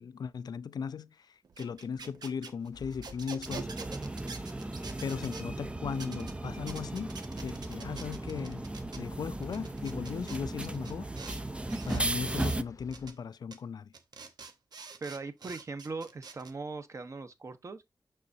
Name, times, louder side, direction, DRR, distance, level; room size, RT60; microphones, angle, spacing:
voice 1, 0.0-3.7 4.3-4.5 5.0-7.1 7.4-8.7 9.0-11.1 11.9-13.9, left 6 dB, 80° left, 0.4 m, -37 dB
sound 1, 1.4-5.5 5.9-6.3 6.7-9.0 9.4-11.4 11.7-12.6 12.9-13.1 13.5-13.6 13.9-16.5, right 5 dB, 90° right, 1.0 m, -46 dB
sound 2, 2.7-13.1, left 4 dB, 55° left, 0.8 m, -51 dB
sound 3, 3.4-12.6, right 2 dB, 15° right, 0.4 m, -36 dB
voice 2, 15.0-17.9, right 3 dB, 45° right, 1.0 m, -40 dB
6.7 x 6.4 x 2.7 m
wide cardioid pair, 110°, 7 cm